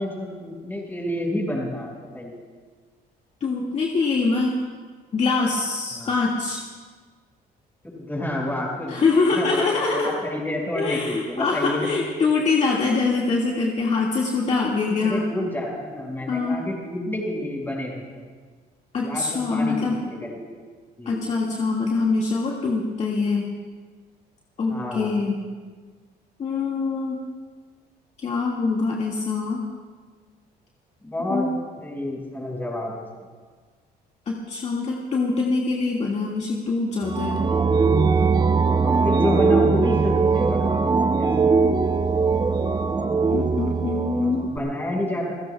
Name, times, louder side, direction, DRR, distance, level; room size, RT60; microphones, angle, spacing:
voice 1, 0.0-2.4 5.9-6.1 7.9-11.9 15.0-18.2 19.0-20.6 21.0-21.3 24.7-25.1 31.0-31.5 31.8-33.1 38.8-41.3 44.1-45.3, left 1 dB, 10° left, -2 dB, 5.6 m, -29 dB
voice 2, 3.4-4.5 5.1-6.6 8.9-10.1 10.7-15.3 16.3-16.6 18.9-20.0 21.1-23.5 24.6-25.4 26.4-27.2 28.2-29.6 31.3-31.5 34.3-37.4 43.3-44.5, left 4 dB, 40° left, -3 dB, 2.0 m, -24 dB
sound 1, 37.0-44.6, right 4 dB, 25° right, 0.8 m, -20 dB
29.0 x 16.5 x 2.3 m, 1.5 s
cardioid pair, 110°, 17 cm